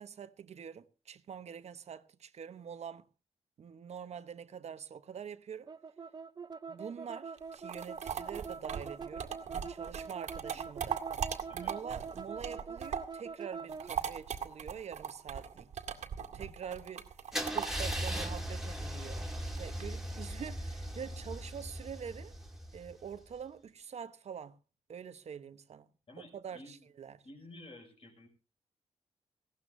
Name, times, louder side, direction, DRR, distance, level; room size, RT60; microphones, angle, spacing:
voice 1, 0.0-3.1 3.6-5.7 6.7-9.3 9.7-11.1 11.5-15.8 16.3-17.0 17.5-22.3 22.7-24.6 24.9-25.9 26.2-27.2, right 7 dB, 70° right, 1.0 m, -45 dB
sound 1, 5.7-13.9, right 5 dB, 35° right, 0.7 m, -44 dB
sound 2, 7.4-13.2 13.5-19.8, right 7 dB, 90° right, 2.0 m, -39 dB
Car / Engine starting / Idling, 17.3-23.2, equal, 5° right, 2.5 m, -38 dB
voice 2, 26.1-26.8 27.2-28.3, left 1 dB, 55° left, 6.3 m, -52 dB
19.5 x 16.5 x 2.7 m
wide cardioid pair, 110°, 12 cm